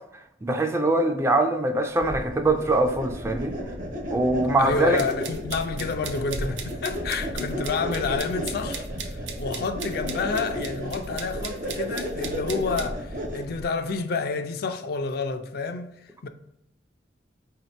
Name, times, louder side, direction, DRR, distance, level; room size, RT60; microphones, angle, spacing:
voice 1, 0.4-3.6 4.1-5.0, right 2 dB, 15° right, 0.3 m, -23 dB
sound 1, 2.0-13.7, equal, 50° right, 0.8 m, -33 dB
voice 2, 4.6-16.3, left 4 dB, 60° left, 0.4 m, -29 dB
sound 2, 5.0-12.9, right 7 dB, 85° right, 0.6 m, -38 dB
4.3 x 2.8 x 3.1 m
head